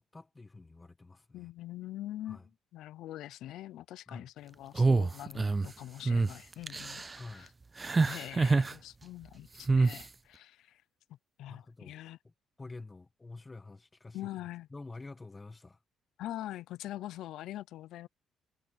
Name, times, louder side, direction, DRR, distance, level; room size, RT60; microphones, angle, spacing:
voice 1, 0.0-1.5 2.3-2.5 4.1-4.3 7.2-7.5 11.5-12.0 12.2-12.3 12.6-14.2 14.7-15.8, left 3 dB, 20° left, 1.3 m, -48 dB
voice 2, 1.3-2.4 2.7-7.0 7.3-7.5 8.0-10.8 11.4-12.2 14.1-14.7 16.2-18.1, left 14 dB, 80° left, 0.6 m, -43 dB
sound 1, 4.8-5.7 6.1-6.3 6.7-7.2 7.8-8.7 9.7-10.0, right 3 dB, 25° right, 0.4 m, -26 dB
cardioid pair, 100°, 0 cm